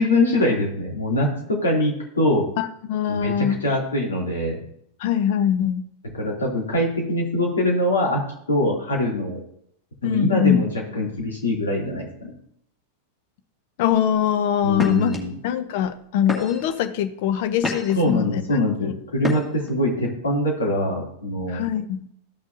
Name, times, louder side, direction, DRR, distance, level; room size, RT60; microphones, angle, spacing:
voice 1, 0.0-2.4 3.1-4.6 6.1-8.2 8.5-9.4 10.0-12.3 14.6-15.3 17.9-21.6, left 1 dB, 70° left, -2 dB, 3.0 m, -23 dB
voice 2, 2.6-3.6 5.0-5.9 10.0-10.7 13.8-15.1 15.4-18.4 18.8-18.9 21.5-22.1, left 9 dB, 50° left, 11 dB, 0.7 m, -22 dB
sound 1, 13.9-14.2 14.7-15.2 15.8-16.0 16.3-16.8 17.3-18.1 19.2-19.7, left 2 dB, 15° left, 2.2 m, -29 dB
14.0 x 6.1 x 2.8 m, 0.70 s
figure-of-eight pair, 90°, 0 cm